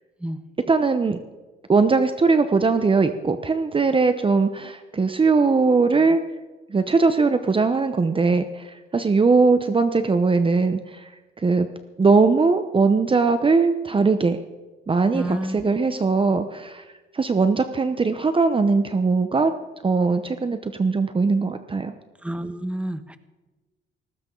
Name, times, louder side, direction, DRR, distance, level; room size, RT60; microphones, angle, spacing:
voice 1, 0.7-1.2 1.7-6.2 6.7-11.1 11.4-11.7 12.0-14.4 14.9-16.8 17.1-19.5 19.8-21.9, right 4 dB, 25° right, 9 dB, 0.9 m, -20 dB
voice 2, 15.1-15.6 22.2-23.2, right 1 dB, 5° right, 10 dB, 1.2 m, -29 dB
18.5 x 15.5 x 3.9 m, 1.2 s
cardioid pair, 90°, 20 cm